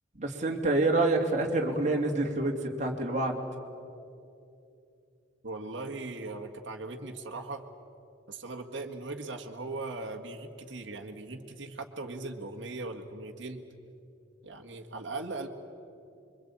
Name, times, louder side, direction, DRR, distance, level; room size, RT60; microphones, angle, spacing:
voice 1, 0.1-3.4, right 2 dB, 40° right, 1 dB, 2.7 m, -27 dB
voice 2, 5.4-7.6 8.3-13.7 14.4-15.5, right 2 dB, 70° right, 1 dB, 1.7 m, -39 dB
25.5 x 23.5 x 8.7 m, 2.7 s
head